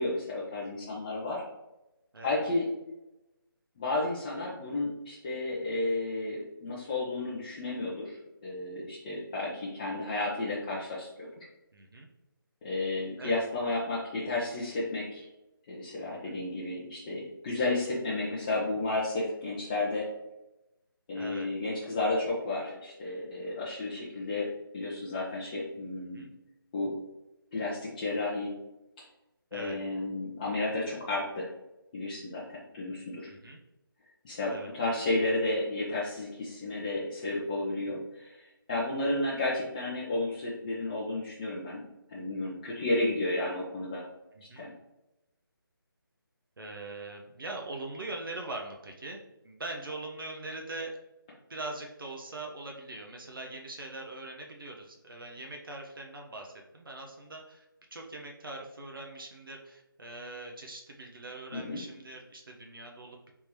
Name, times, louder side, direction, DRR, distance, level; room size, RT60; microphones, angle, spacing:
voice 1, 0.0-1.4 2.2-2.7 3.8-11.3 12.6-15.3 15.7-20.1 21.1-24.5 24.7-26.3 26.7-26.9 27.5-28.5 29.0-29.1 29.5-31.5 31.9-33.3 34.2-41.8 42.1-44.0 44.6-44.7 61.5-61.8, left 2 dB, 20° left, -6 dB, 0.6 m, -32 dB
voice 2, 11.7-12.1 13.2-13.4 16.0-16.4 21.1-21.5 26.1-26.3 29.5-29.8 33.3-33.6 34.5-34.9 44.3-44.6 46.6-49.2 49.4-50.9 51.5-57.7 57.9-63.4, right 2 dB, 70° right, 1 dB, 0.8 m, -42 dB
3.6 x 2.8 x 4.6 m, 0.96 s
figure-of-eight pair, 160°, 12 cm